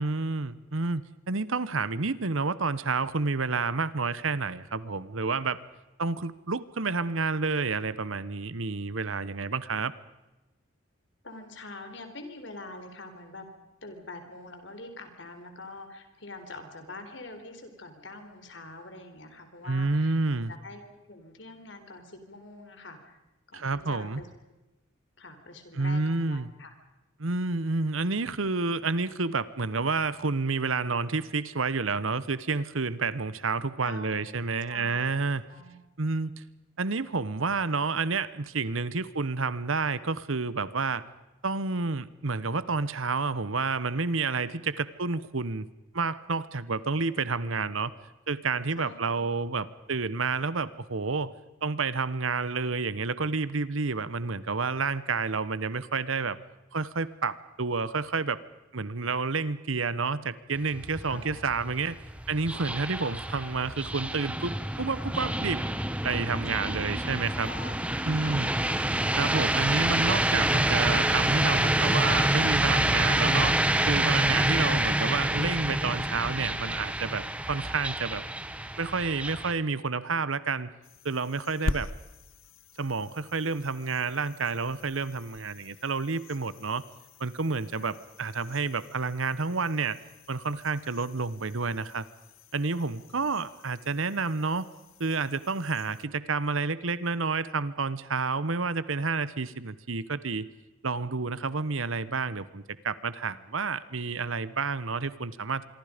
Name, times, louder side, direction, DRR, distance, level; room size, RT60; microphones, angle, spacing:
voice 1, 0.0-5.6 6.0-9.9 19.7-20.5 23.5-24.2 25.8-26.5 27.2-35.4 36.0-36.3 36.8-41.0 41.4-45.7 45.9-47.9 48.3-51.3 51.6-56.4 56.7-58.4 58.7-62.0 62.3-65.6 66.0-67.5 68.1-68.5 69.1-73.6 73.9-78.2 78.8-80.7 81.0-81.9 82.8-86.8 87.2-90.0 90.3-92.0 92.5-94.7 95.0-100.5 100.8-105.7, right 4 dB, 85° right, 16 dB, 1.1 m, -29 dB
voice 2, 11.2-13.4 13.8-20.2 20.5-23.2 23.5-24.3 25.2-26.7 33.8-34.3 34.7-35.8 48.8-49.3 61.0-61.4 66.5-67.8 68.2-68.8 81.7-81.8 87.7-87.9 93.2-93.3, left 2 dB, 65° left, 7 dB, 3.9 m, -45 dB
sound 1, 60.5-79.5, right 1 dB, 5° right, 1.0 m, -27 dB
sound 2, 80.8-96.1, left 2 dB, 85° left, 1.0 m, -43 dB
26.0 x 23.5 x 5.2 m, 1.0 s
head